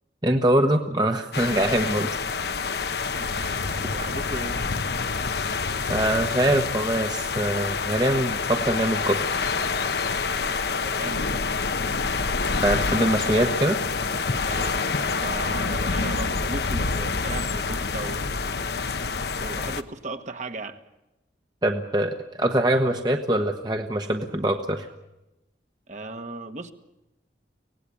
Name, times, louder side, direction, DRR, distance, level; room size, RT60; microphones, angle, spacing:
voice 1, 0.2-2.1 3.4-3.6 5.9-9.2 12.6-13.8 21.6-24.9, right 1 dB, 25° right, 4 dB, 1.0 m, -23 dB
sound 1, 1.3-19.8, left 4 dB, 65° left, 0.9 m, -27 dB
voice 2, 3.1-4.6 10.5-11.4 14.5-18.2 19.4-20.8 25.9-26.7, right 2 dB, 40° right, 7 dB, 1.4 m, -37 dB
24.5 x 18.0 x 8.6 m, 0.94 s
head